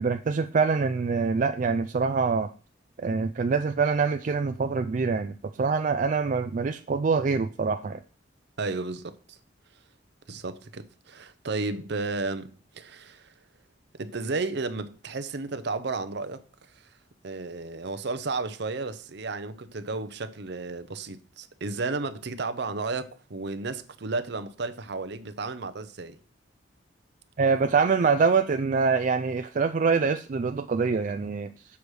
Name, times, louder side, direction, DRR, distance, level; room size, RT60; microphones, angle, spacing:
voice 1, 0.0-2.5 3.0-8.0 27.4-31.5, right 5 dB, 45° right, 0.4 m, -25 dB
voice 2, 8.6-9.4 10.3-13.3 13.9-16.4 16.7-16.8 17.2-26.2, right 3 dB, 65° right, 0.8 m, -33 dB
7.0 x 6.2 x 4.9 m
head